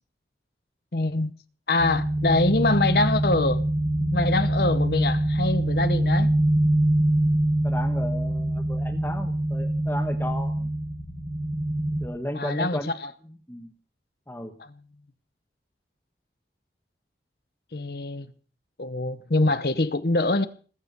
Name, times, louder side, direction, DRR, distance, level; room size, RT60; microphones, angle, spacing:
voice 1, 0.9-1.3 1.7-3.6 4.0-6.3 12.3-13.1 14.6-14.7 17.7-18.3 18.8-20.5, left 2 dB, 60° left, 1.0 m, -24 dB
sound 1, 1.8-12.0, right 1 dB, 20° right, 1.9 m, -24 dB
voice 2, 7.6-10.7 12.0-12.9 13.5-13.7 14.3-14.5, left 1 dB, 10° left, 1.3 m, -34 dB
19.5 x 8.6 x 6.9 m
head